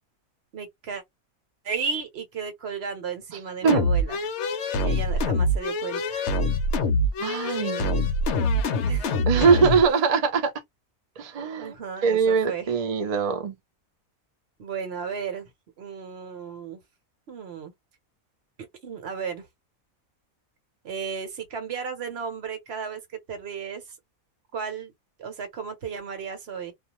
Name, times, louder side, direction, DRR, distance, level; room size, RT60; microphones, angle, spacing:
voice 1, 0.5-1.0 1.6-4.2 4.8-6.2 8.9-9.2 9.5-9.9 11.6-12.7 14.6-15.5 15.8-16.8 17.3-17.7 18.8-19.5 20.8-23.0 23.3-24.0 24.5-24.9 25.2-26.7, right 6 dB, 50° right, 1.0 m, -34 dB
sound 1, 3.7-9.9, left 1 dB, 60° left, 0.8 m, -25 dB
voice 2, 7.2-8.1 9.3-10.5 11.2-11.7 12.0-13.5, right 5 dB, 80° right, 0.3 m, -22 dB
2.4 x 2.2 x 2.9 m
omnidirectional pair, 1.5 m